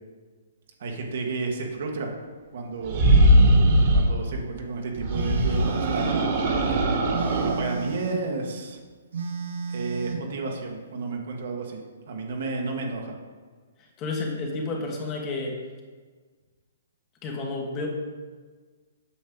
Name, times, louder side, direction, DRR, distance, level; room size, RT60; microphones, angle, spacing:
voice 1, 0.8-2.1 2.5-3.0 3.9-6.4 7.4-8.8 9.7-13.1, right 3 dB, 60° right, 1 dB, 1.6 m, -32 dB
sound 1, 2.8-4.1 5.0-7.6, right 1 dB, 45° right, 1.7 m, -20 dB
Telephone, 5.1-6.3 7.1-8.3 9.1-10.3, right 5 dB, 80° right, 1.5 m, -32 dB
voice 2, 13.8-15.6 17.2-17.9, left 3 dB, 25° left, 0 dB, 1.4 m, -31 dB
8.6 x 6.4 x 3.8 m, 1.4 s
hypercardioid pair, 150°, 0 cm